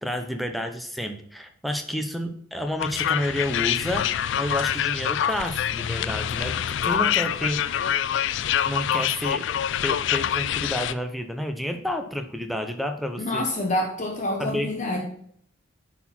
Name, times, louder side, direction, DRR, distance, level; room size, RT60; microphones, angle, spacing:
voice 1, 0.0-7.6 8.7-9.4 9.8-13.5 14.4-14.7, left 1 dB, ahead, 5 dB, 0.6 m, -30 dB
sound 1, 2.8-10.9, left 9 dB, 60° left, 0.3 m, -25 dB
voice 2, 13.2-15.0, left 1 dB, 35° left, 1 dB, 0.9 m, -27 dB
9.9 x 4.2 x 4.3 m, 0.65 s
head